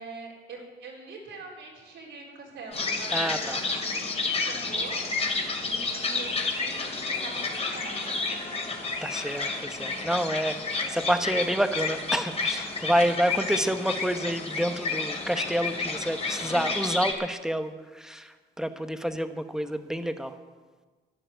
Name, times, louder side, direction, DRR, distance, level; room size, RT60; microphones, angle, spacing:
voice 1, 0.0-5.0 5.6-8.6, right 3 dB, 80° right, -3 dB, 4.0 m, -44 dB
sound 1, 2.7-17.1, left 3 dB, 30° left, 2.5 m, -30 dB
voice 2, 3.1-3.6 9.0-20.3, equal, 5° right, 9 dB, 1.0 m, -28 dB
11.5 x 10.0 x 7.7 m, 1.4 s
cardioid pair, 90°, 20 cm